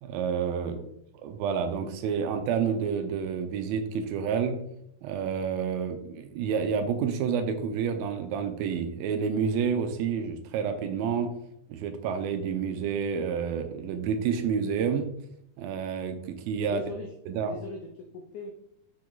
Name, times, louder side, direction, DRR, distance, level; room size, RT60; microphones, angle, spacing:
voice 1, 0.0-0.8 1.2-4.6 5.0-11.3 11.7-15.1 15.6-16.8 17.3-17.5, right 6 dB, 80° right, 7 dB, 2.4 m, -29 dB
voice 2, 16.7-17.1 17.4-18.5, left 2 dB, 90° left, 3 dB, 1.7 m, -40 dB
7.0 x 4.8 x 3.9 m, 0.74 s
omnidirectional pair, 4.4 m